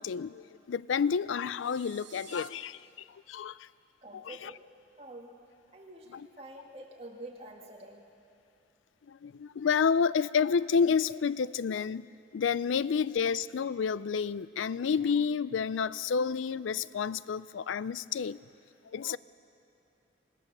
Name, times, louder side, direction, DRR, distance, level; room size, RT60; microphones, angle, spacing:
voice 1, 0.0-2.8 3.3-3.7 4.3-4.5 9.1-12.1 12.3-18.4 18.9-19.2, left 6 dB, 90° left, 18 dB, 0.4 m, -29 dB
sound 1, 1.5-2.5, right 10 dB, 75° right, 1.6 m, -52 dB
voice 2, 4.0-4.6 5.0-5.3 5.7-8.1, right 1 dB, 30° right, 0 dB, 2.0 m, -47 dB
25.5 x 18.0 x 6.7 m, 2.7 s
head